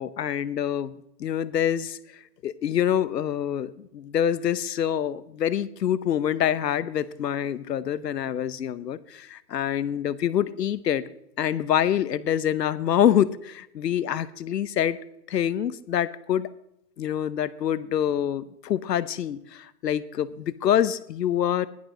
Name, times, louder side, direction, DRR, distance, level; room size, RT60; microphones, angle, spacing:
voice 1, 0.0-2.0 2.4-11.0 11.4-15.0 15.3-16.5 17.0-21.7, left 10 dB, 75° left, 16 dB, 0.9 m, -26 dB
16.0 x 11.5 x 3.8 m, 0.79 s
hypercardioid pair, 170°, 50 cm